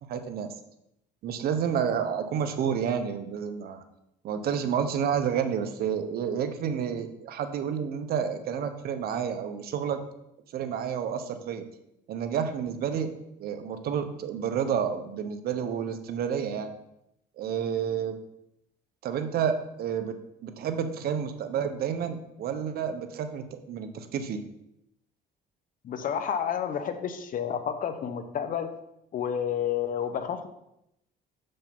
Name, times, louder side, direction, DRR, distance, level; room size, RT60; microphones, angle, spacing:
voice 1, 0.1-0.5 1.2-3.8 4.2-10.0 10.5-11.6 12.1-13.1 13.4-16.7 17.4-18.1 19.0-20.1 20.4-24.4, right 7 dB, 65° right, 9 dB, 0.9 m, -30 dB
voice 2, 25.8-28.7 29.1-30.5, left 8 dB, 55° left, 9 dB, 0.9 m, -30 dB
6.9 x 5.5 x 5.3 m, 0.81 s
cardioid pair, 110°, 17 cm